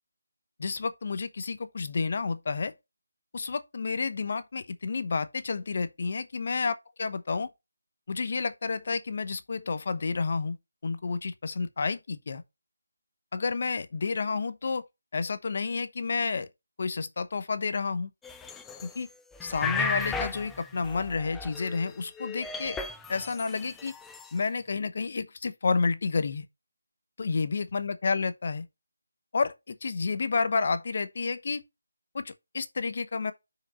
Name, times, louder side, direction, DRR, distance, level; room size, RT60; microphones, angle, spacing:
voice 1, 0.6-2.7 3.3-7.5 8.1-10.6 10.8-12.4 13.3-14.8 15.1-16.5 16.8-18.1 18.8-19.1 19.4-22.8 23.1-23.9 24.3-26.4 27.2-28.7 29.3-31.6 32.1-33.3, left 4 dB, 45° left, 0.9 m, -30 dB
sound 1, 18.2-19.0 19.3-21.9 22.2-24.3, left 4 dB, 5° left, 0.5 m, -35 dB
6.2 x 5.0 x 5.5 m
figure-of-eight pair, 170°, 0 cm